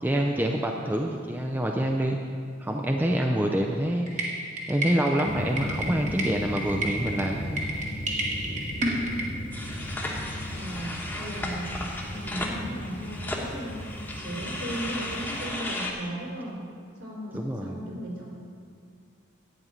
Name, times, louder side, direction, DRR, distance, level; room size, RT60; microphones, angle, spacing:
voice 1, 0.0-2.2 2.6-4.3 4.7-7.7 17.3-17.8, right 1 dB, 10° right, 1 dB, 0.5 m, -26 dB
sound 1, 4.1-9.3, right 1 dB, 35° right, 1.2 m, -31 dB
sound 2, 5.2-15.5, left 1 dB, 25° left, 1.3 m, -37 dB
sound 3, 9.5-15.9, left 1 dB, 10° left, 1.1 m, -35 dB
voice 2, 10.5-11.8 12.1-13.9 14.1-16.6 17.0-18.2, right 1 dB, 65° right, -4 dB, 3.4 m, -36 dB
11.0 x 5.4 x 8.5 m, 2.1 s
head